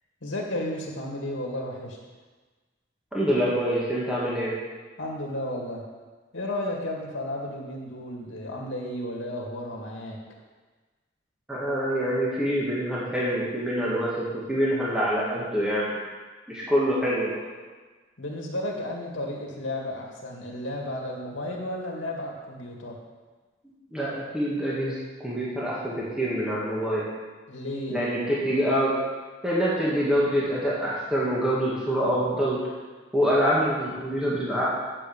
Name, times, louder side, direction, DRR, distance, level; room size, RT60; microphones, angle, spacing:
voice 1, 0.2-2.0 5.0-5.8 6.3-10.2 18.2-23.0 27.5-28.2, left 1 dB, 80° left, -1 dB, 2.1 m, -33 dB
voice 2, 3.1-4.5 11.5-16.0 16.5-17.3 23.9-27.0 27.9-28.9 29.4-32.6 33.1-34.6, equal, 5° right, -7 dB, 1.9 m, -25 dB
9.2 x 6.9 x 7.0 m, 1.3 s
head